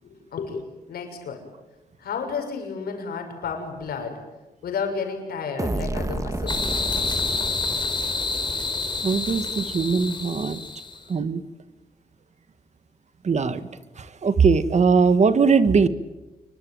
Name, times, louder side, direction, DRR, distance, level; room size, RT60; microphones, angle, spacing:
voice 1, 0.0-1.5 2.0-4.2 4.6-6.6 8.2-8.4 10.2-10.3, left 5 dB, 85° left, 3 dB, 6.6 m, -32 dB
sound 1, 5.6-9.2, right 2 dB, 20° right, 2.2 m, -31 dB
sound 2, 6.5-11.0, left 3 dB, 30° left, 3.9 m, -28 dB
voice 2, 9.0-10.6 11.1-11.4 13.2-13.7 14.0-15.9, right 5 dB, 50° right, 12 dB, 1.8 m, -20 dB
28.0 x 24.0 x 8.9 m, 1.1 s
cardioid pair, 95°, 15 cm